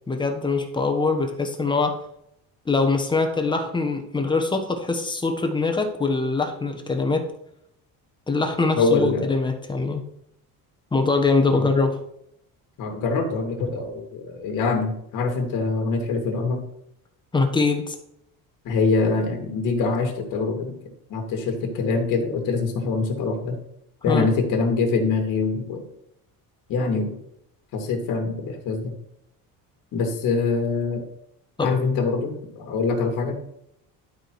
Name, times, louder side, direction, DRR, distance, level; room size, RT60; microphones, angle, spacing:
voice 1, 0.1-2.0 2.7-7.3 8.3-10.0 10.9-12.0 17.3-17.9 24.1-24.3 31.6-31.7, left 3 dB, 15° left, 5 dB, 1.2 m, -23 dB
voice 2, 8.7-9.3 11.5-11.7 12.8-16.6 18.6-20.7 21.1-23.6 24.0-25.8 26.7-27.1 27.7-28.9 29.9-31.0 31.6-33.3, left 4 dB, 60° left, 4 dB, 2.4 m, -24 dB
12.0 x 5.0 x 4.7 m, 0.74 s
cardioid pair, 155°, 36 cm